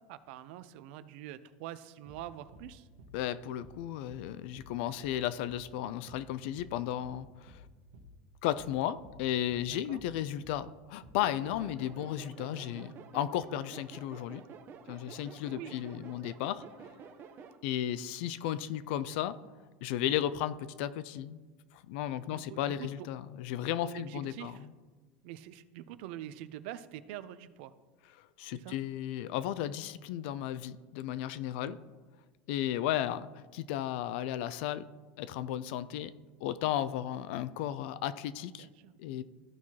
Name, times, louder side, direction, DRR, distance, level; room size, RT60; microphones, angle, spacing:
voice 1, 0.0-2.9 9.7-10.0 12.5-12.6 15.5-15.8 22.3-23.1 23.8-24.7 25.2-27.7 28.5-28.8 31.6-31.8 38.6-38.9, right 12 dB, 70° right, 14 dB, 0.5 m, -45 dB
sound 1, 2.1-2.3 2.5-2.7 3.0-3.2 3.6-3.8 4.1-4.3 4.5-4.7 5.0-5.2 5.5-5.7 6.1-6.3 6.5-6.7 7.0-7.2 7.5-7.7 7.9-8.1 8.6-8.8 9.0-9.2 9.5-9.7 9.9-10.1 10.4-10.6 11.0-11.2 11.5-11.7, left 1 dB, 85° right, 1.2 m, -53 dB
voice 2, 3.1-7.6 8.4-14.4 14.9-16.6 17.6-19.4 19.8-21.4 21.7-24.7 28.2-31.8 32.5-34.9 35.2-36.1 36.4-38.7 39.0-39.2, left 11 dB, 70° left, 15 dB, 0.4 m, -34 dB
sound 2, 11.2-17.6, right 6 dB, 35° right, 0.7 m, -50 dB
13.5 x 4.6 x 2.8 m, 1.3 s
supercardioid pair, 125°, 6 cm